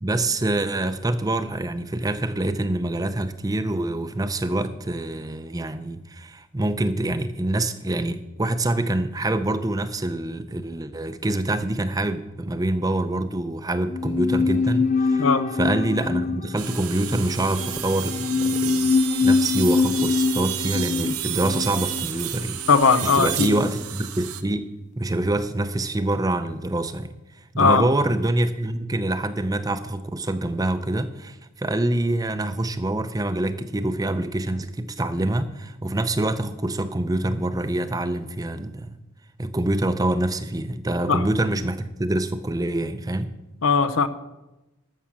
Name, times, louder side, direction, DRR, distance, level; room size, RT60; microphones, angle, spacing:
voice 1, 0.0-18.9 19.2-22.6 23.0-24.7 25.0-27.1 27.5-39.0 39.4-43.3, right 1 dB, 15° right, 11 dB, 0.5 m, -25 dB
sound 1, 13.9-23.2 23.5-23.6, left 4 dB, 35° left, 0.3 m, -25 dB
voice 2, 15.2-15.5 22.7-23.6 27.6-27.9 41.1-41.2 43.6-44.1, left 5 dB, 65° left, 12 dB, 0.7 m, -19 dB
sound 2, 16.6-24.4, right 12 dB, 85° right, 0.9 m, -32 dB
13.0 x 6.2 x 7.3 m, 1.0 s
head